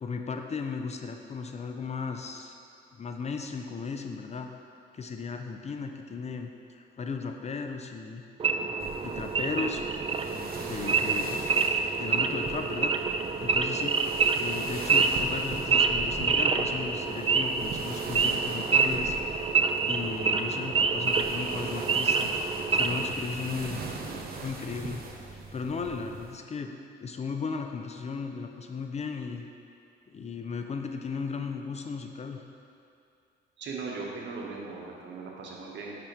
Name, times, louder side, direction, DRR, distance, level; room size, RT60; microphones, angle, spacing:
voice 1, 0.0-2.6 2.9-4.5 4.9-8.2 9.0-9.8 10.3-11.4 12.0-13.1 13.4-14.0 14.4-19.2 19.8-22.3 22.7-23.8 24.4-25.0 25.5-26.7 27.0-29.5 30.1-32.5, left 5 dB, 35° left, 4 dB, 0.5 m, -36 dB
Wild animals / Idling, 8.4-23.1, right 4 dB, 30° right, 0.4 m, -27 dB
sound 1, 8.8-26.4, right 4 dB, 50° right, 0.8 m, -41 dB
voice 2, 33.6-36.0, right 4 dB, 65° right, -2 dB, 1.2 m, -38 dB
8.7 x 5.1 x 3.1 m, 2.5 s
cardioid pair, 90°, 20 cm